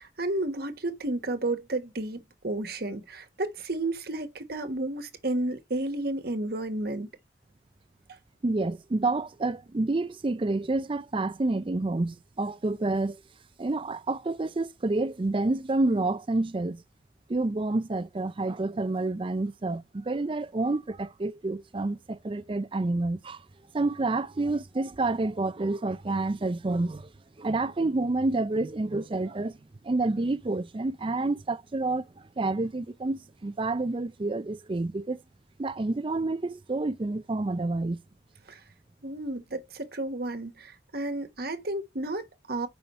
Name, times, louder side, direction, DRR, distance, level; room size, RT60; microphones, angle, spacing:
voice 1, 0.0-7.1 8.1-8.2 38.5-38.6 39.0-42.7, right 2 dB, 60° right, 1.3 m, -32 dB
voice 2, 8.4-13.2 13.6-16.8 17.3-23.4 23.7-27.1 27.4-29.6 29.8-35.2 35.6-38.0, right 2 dB, 30° right, 0.5 m, -28 dB
6.9 x 5.6 x 4.2 m
head